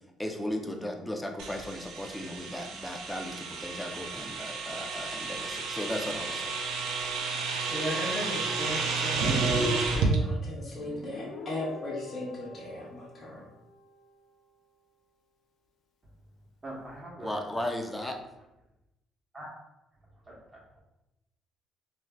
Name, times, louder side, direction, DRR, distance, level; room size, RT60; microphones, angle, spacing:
voice 1, 0.2-6.5 17.2-18.2, left 1 dB, 10° left, 3 dB, 0.4 m, -36 dB
sound 1, 1.4-10.2, right 4 dB, 85° right, 0.4 m, -31 dB
voice 2, 7.7-13.4, left 1 dB, 40° left, -5 dB, 0.9 m, -36 dB
Guitar, 10.8-14.3, left 3 dB, 75° left, 0.4 m, -46 dB
voice 3, 16.6-17.6 19.3-19.5 20.2-20.8, right 1 dB, 20° right, -5 dB, 1.0 m, -43 dB
3.1 x 2.5 x 2.2 m, 0.95 s
cardioid pair, 95°, 0 cm